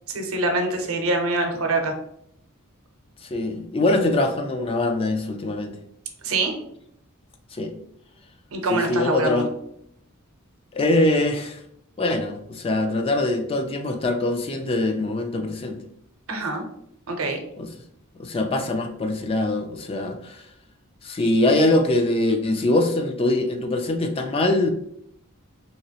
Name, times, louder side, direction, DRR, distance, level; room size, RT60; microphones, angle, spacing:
voice 1, 0.1-1.9 6.2-6.5 8.5-9.5 16.3-16.6 17.1-17.4, right 2 dB, 75° right, 4 dB, 0.7 m, -24 dB
voice 2, 3.3-5.8 7.5-7.7 8.7-9.5 10.7-11.6 12.0-15.8 17.6-17.7 18.2-20.4 21.0-24.7, left 2 dB, 25° left, 5 dB, 0.3 m, -23 dB
3.0 x 2.9 x 2.8 m, 0.73 s
head